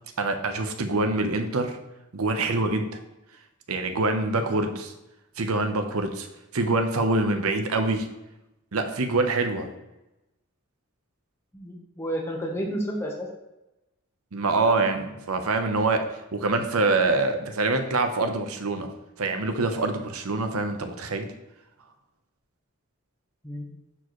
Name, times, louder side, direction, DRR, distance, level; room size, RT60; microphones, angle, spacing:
voice 1, 0.2-1.8 2.1-2.9 3.7-4.9 5.4-6.3 6.5-8.1 8.7-9.7 14.3-16.0 16.3-18.9 19.2-21.3, right 3 dB, 80° right, 6 dB, 0.9 m, -25 dB
voice 2, 11.5-13.3 23.4-23.7, equal, 10° left, 0 dB, 1.2 m, -31 dB
10.5 x 4.6 x 3.1 m, 0.95 s
head